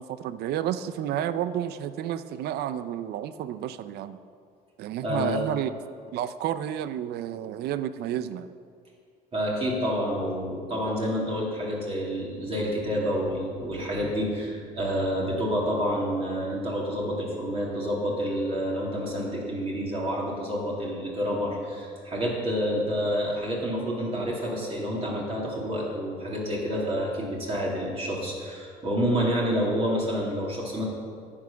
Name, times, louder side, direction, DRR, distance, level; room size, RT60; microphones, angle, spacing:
voice 1, 0.0-4.2 4.8-5.7 6.1-8.5, right 10 dB, 70° right, 13 dB, 0.5 m, -31 dB
voice 2, 5.0-5.4 9.3-30.8, equal, 35° right, -4 dB, 2.7 m, -28 dB
11.0 x 8.6 x 5.8 m, 2.2 s
cardioid pair, 110°, 17 cm